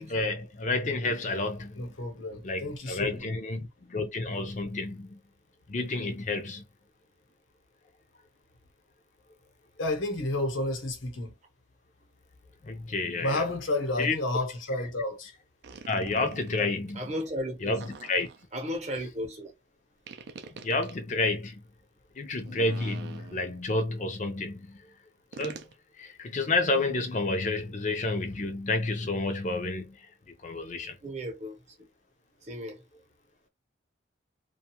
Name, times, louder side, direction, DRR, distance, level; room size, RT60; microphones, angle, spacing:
voice 1, 0.0-1.8 2.4-5.2 5.7-6.6 12.6-13.4 14.0-14.2 15.9-17.0 17.6-18.3 20.6-21.6 22.2-24.8 25.4-25.6 26.0-30.0 30.4-31.0, left 2 dB, 40° left, 0.5 m, -30 dB
voice 2, 1.7-3.3 9.8-11.4 13.2-15.3, left 2 dB, 85° left, 0.9 m, -31 dB
sound 1, 15.6-16.6 17.8-18.6 20.1-20.9 22.4-23.6 25.3-25.7, right 4 dB, 55° right, 0.4 m, -45 dB
voice 3, 16.9-17.8 18.5-19.5 31.0-31.9 32.4-32.8, equal, 35° right, 0.8 m, -35 dB
2.5 x 2.3 x 2.8 m
head